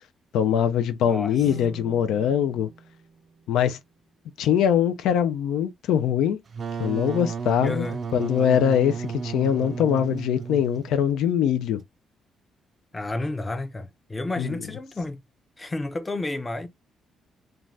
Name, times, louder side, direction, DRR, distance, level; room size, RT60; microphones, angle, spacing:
voice 1, 0.3-2.7 3.5-3.8 4.4-6.4 6.8-7.9 8.1-11.8 14.4-14.5, left 9 dB, 85° left, 0.3 m, -22 dB
voice 2, 1.0-1.5 7.6-8.0 12.9-15.2 15.6-16.7, left 2 dB, 20° left, 0.5 m, -31 dB
sound 1, 1.4-4.6, right 5 dB, 90° right, 0.7 m, -46 dB
Wind instrument woodwind instrument, 6.5-11.0, right 5 dB, 45° right, 0.4 m, -33 dB
2.5 x 2.2 x 3.2 m
cardioid pair, 90°, 0 cm